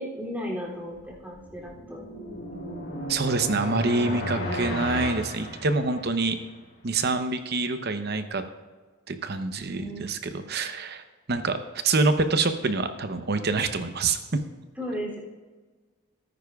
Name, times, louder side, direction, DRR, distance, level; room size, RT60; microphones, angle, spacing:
voice 1, 0.0-2.0 9.6-10.1 14.8-15.2, equal, 10° right, -4 dB, 2.9 m, -35 dB
sound 1, 1.1-6.3, left 1 dB, 45° left, 3.2 m, -34 dB
voice 2, 3.1-6.4 6.8-8.4 9.1-10.2 10.5-11.6 11.8-14.4, right 3 dB, 50° right, 8 dB, 0.8 m, -26 dB
18.0 x 9.8 x 2.4 m, 1.3 s
head